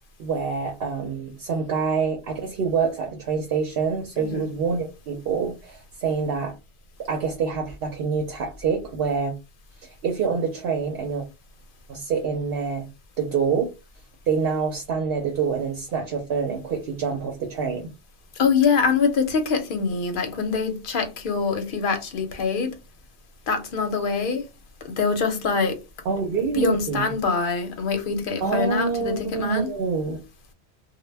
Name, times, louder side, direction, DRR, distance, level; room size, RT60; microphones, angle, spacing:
voice 1, 0.2-6.5 7.0-9.3 9.8-11.2 11.9-12.9 13.2-13.7 14.3-17.9 26.0-27.1 28.4-30.2, right 5 dB, 65° right, 0.8 m, -26 dB
voice 2, 18.4-22.7 23.5-24.5 24.8-25.8 26.5-29.7, left 5 dB, 55° left, 0.7 m, -24 dB
2.1 x 2.1 x 3.2 m
omnidirectional pair, 1.2 m